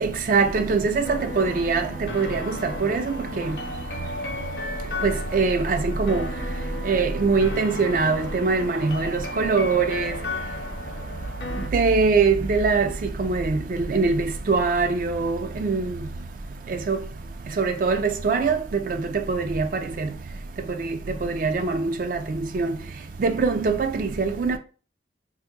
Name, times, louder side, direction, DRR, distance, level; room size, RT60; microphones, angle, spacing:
voice 1, 0.0-1.8 2.1-2.6 2.8-3.0 5.0-6.2 6.9-9.1 9.4-10.1 11.7-12.9 13.2-13.6 13.9-15.9 16.9-17.0 17.6-18.0 18.2-18.6 19.3-19.7 21.2-22.2 22.5-22.7 23.2-24.6, right 4 dB, 45° right, 0.3 m, -22 dB
sound 1, 1.0-11.7, left 2 dB, 60° left, 0.7 m, -35 dB
2.8 x 2.5 x 3.6 m
head